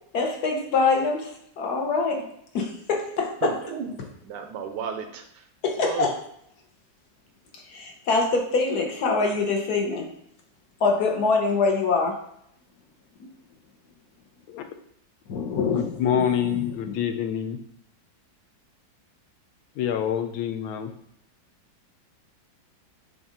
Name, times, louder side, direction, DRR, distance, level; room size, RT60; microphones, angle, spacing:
voice 1, 0.1-2.2 2.5-3.5 5.6-6.1 7.5-10.1 10.8-12.2 13.2-13.3 15.3-17.0, left 4 dB, 55° left, 2 dB, 1.4 m, -25 dB
voice 2, 3.4-3.9 4.2-5.4 5.8-6.1, right 7 dB, 75° right, 6 dB, 1.1 m, -32 dB
voice 3, 15.7-17.6 19.8-20.9, left 9 dB, 85° left, 7 dB, 1.4 m, -26 dB
7.2 x 2.6 x 5.0 m, 0.73 s
omnidirectional pair, 2.1 m